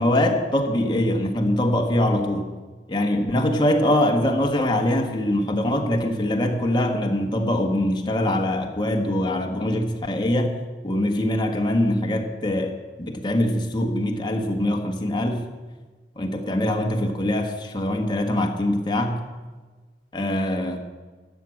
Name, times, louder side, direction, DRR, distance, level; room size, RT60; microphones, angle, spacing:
voice 1, 0.0-2.5 2.9-15.5 16.2-19.2 20.1-20.8, left 1 dB, 25° left, 2 dB, 1.4 m, -23 dB
13.0 x 7.8 x 8.5 m, 1.3 s
head